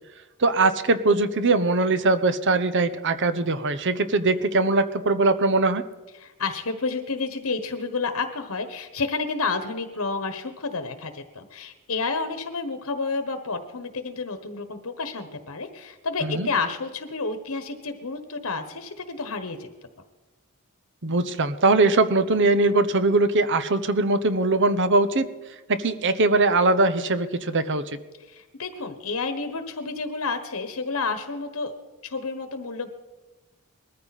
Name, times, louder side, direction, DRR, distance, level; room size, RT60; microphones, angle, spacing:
voice 1, 0.4-5.8 16.2-16.5 21.0-25.3 25.7-27.8, right 3 dB, 55° right, 12 dB, 1.0 m, -21 dB
voice 2, 6.2-19.7 28.3-31.7 32.0-32.9, left 4 dB, 70° left, 8 dB, 1.3 m, -30 dB
20.5 x 14.0 x 4.2 m, 1.2 s
head